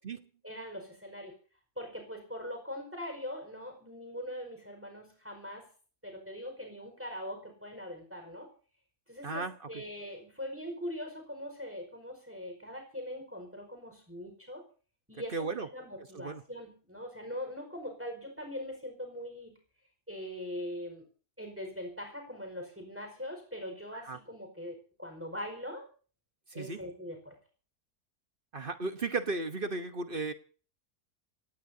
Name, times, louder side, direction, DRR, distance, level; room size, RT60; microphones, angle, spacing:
voice 1, 0.4-1.3 1.8-5.7 6.0-8.5 9.1-14.6 15.1-19.6 20.1-21.0 21.4-25.8 26.5-27.4, left 1 dB, 10° right, 3 dB, 4.9 m, -42 dB
voice 2, 15.3-15.7 16.1-16.4 24.1-24.2 26.5-26.8 28.5-30.3, right 3 dB, 40° right, 9 dB, 1.1 m, -34 dB
26.0 x 18.0 x 2.8 m, 0.40 s
omnidirectional pair, 1.6 m